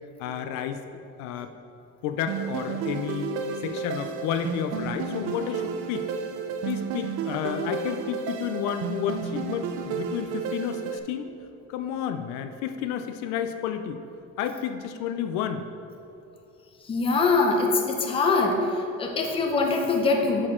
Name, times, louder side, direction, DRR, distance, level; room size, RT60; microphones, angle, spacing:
voice 1, 0.2-0.8 1.2-1.5 2.0-3.3 3.6-6.1 6.6-11.3 11.7-14.0 14.4-15.7, left 9 dB, 70° left, 8 dB, 0.5 m, -31 dB
sound 1, 2.3-11.0, right 5 dB, 50° right, 0.6 m, -32 dB
voice 2, 16.9-18.6 19.0-20.5, left 3 dB, 20° left, 2 dB, 0.7 m, -23 dB
8.8 x 6.5 x 3.7 m, 2.8 s
cardioid pair, 180°, 30 cm